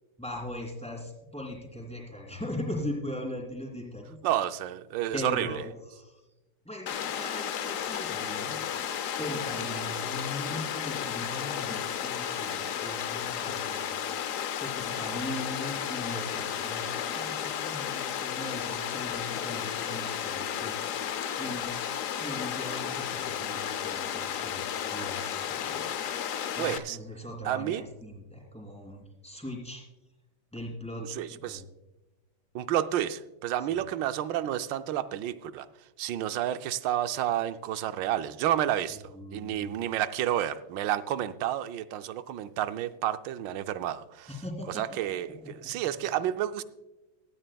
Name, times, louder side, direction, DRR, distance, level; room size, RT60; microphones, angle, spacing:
voice 1, 0.2-4.2 5.1-6.2 6.6-8.9 9.2-13.9 14.3-21.9 22.2-26.0 26.6-29.8 30.5-31.6 33.7-33.8 39.1-39.7 44.3-45.7, left 1 dB, 5° left, -2 dB, 2.7 m, -40 dB
voice 2, 4.2-5.6 26.6-27.0 27.4-27.8 31.1-31.6 32.5-35.7 36.0-39.0 39.3-44.3 44.7-46.6, right 12 dB, 75° right, 12 dB, 1.2 m, -30 dB
Water, 6.9-26.8, left 9 dB, 70° left, 0.7 m, -33 dB
17.0 x 12.5 x 2.3 m, 1.0 s
omnidirectional pair, 2.1 m